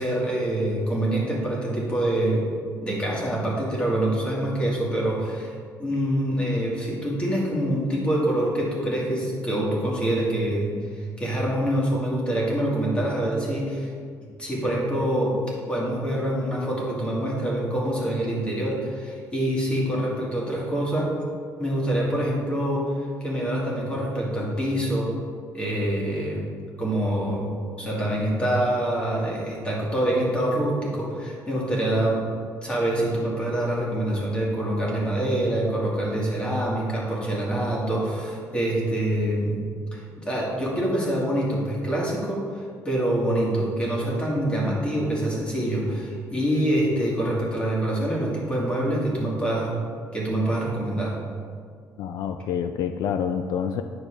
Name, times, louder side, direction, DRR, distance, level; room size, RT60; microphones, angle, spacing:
voice 1, 0.0-2.5 2.8-13.9 14.4-15.4 15.7-21.1 21.6-25.1 25.5-26.4 26.8-32.2 32.6-39.6 39.9-49.7 50.1-51.2, right 1 dB, 15° left, -4 dB, 1.8 m, -25 dB
voice 2, 52.0-53.8, left 8 dB, 70° left, 8 dB, 0.3 m, -27 dB
9.4 x 6.4 x 3.3 m, 2.1 s
cardioid pair, 160°, 7 cm